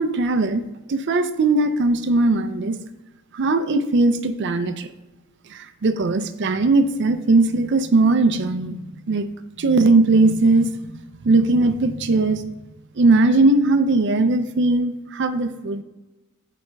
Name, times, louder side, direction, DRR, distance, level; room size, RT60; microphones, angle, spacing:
voice 1, 0.0-2.8 3.3-4.9 5.5-8.8 9.1-9.2 9.6-10.7 11.2-12.4 13.0-15.8, right 2 dB, 55° right, 9 dB, 0.5 m, -19 dB
11.5 x 4.2 x 3.4 m, 1.1 s
head